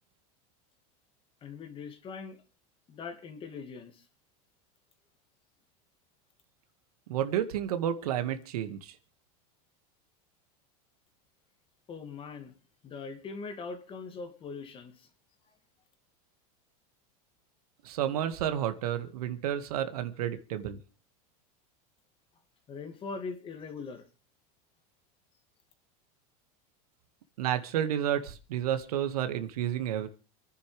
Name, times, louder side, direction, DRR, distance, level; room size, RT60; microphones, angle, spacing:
voice 1, 1.4-2.4 2.9-4.0 11.9-12.5 12.8-15.1 22.7-24.0, left 4 dB, 30° left, 7 dB, 2.5 m, -41 dB
voice 2, 7.1-8.9 17.8-20.8 27.4-30.1, right 10 dB, 85° right, 9 dB, 2.0 m, -31 dB
28.5 x 10.5 x 3.5 m, 0.34 s
supercardioid pair, 140°, 19 cm